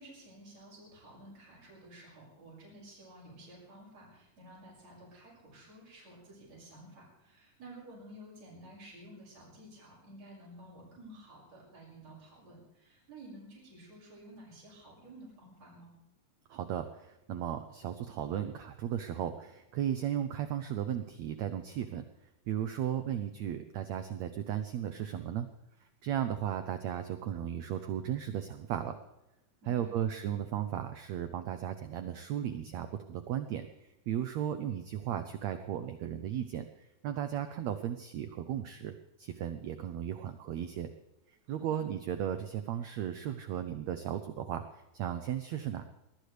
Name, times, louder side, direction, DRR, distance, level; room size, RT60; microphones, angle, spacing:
voice 1, 0.0-15.9 29.6-30.0 41.5-41.8, right 1 dB, 45° right, -5 dB, 7.2 m, -52 dB
voice 2, 16.5-22.0 22.5-25.5 26.0-29.0 29.7-33.7 34.1-40.9 41.5-45.9, right 10 dB, 90° right, 9 dB, 1.5 m, -35 dB
21.5 x 19.0 x 3.3 m, 0.90 s
omnidirectional pair, 4.2 m